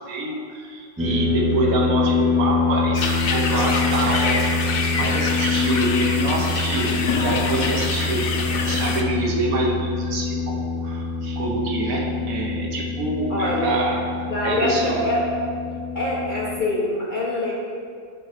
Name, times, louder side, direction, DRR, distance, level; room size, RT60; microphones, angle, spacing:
voice 1, 0.1-8.3 8.6-14.1 14.4-15.1, right 2 dB, 70° right, 0 dB, 1.3 m, -26 dB
sound 1, 1.0-16.6, left 4 dB, 10° right, 1.0 m, -25 dB
sound 2, 2.9-9.0, left 4 dB, 70° left, 0.5 m, -27 dB
Thunder, 6.0-10.9 11.8-11.9 12.1-12.2 13.3-13.6, left 3 dB, 90° left, 1.3 m, -35 dB
voice 2, 13.3-13.8 14.1-15.2 15.9-17.5, left 1 dB, 40° left, -4 dB, 0.8 m, -24 dB
7.1 x 3.6 x 4.9 m, 2.2 s
omnidirectional pair, 1.6 m